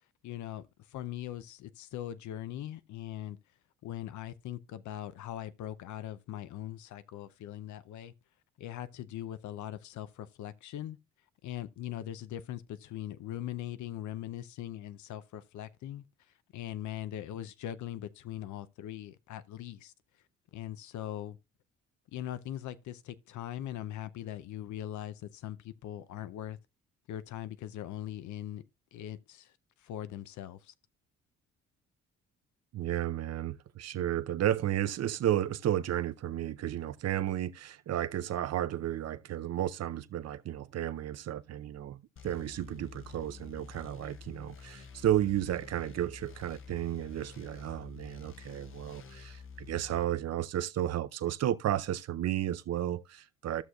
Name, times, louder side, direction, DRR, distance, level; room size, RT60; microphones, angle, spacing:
voice 1, 0.2-3.4 3.8-8.1 8.6-11.0 11.4-16.1 16.5-19.9 20.5-21.4 22.1-26.6 27.1-28.6 28.9-29.5 29.8-30.7, left 12 dB, 75° left, 0.6 m, -41 dB
voice 2, 32.7-42.0 42.2-53.6, right 12 dB, 55° right, 0.6 m, -33 dB
sound 1, 42.2-50.0, left 5 dB, 45° left, 0.8 m, -49 dB
14.0 x 6.4 x 2.3 m
cardioid pair, 90°, 30 cm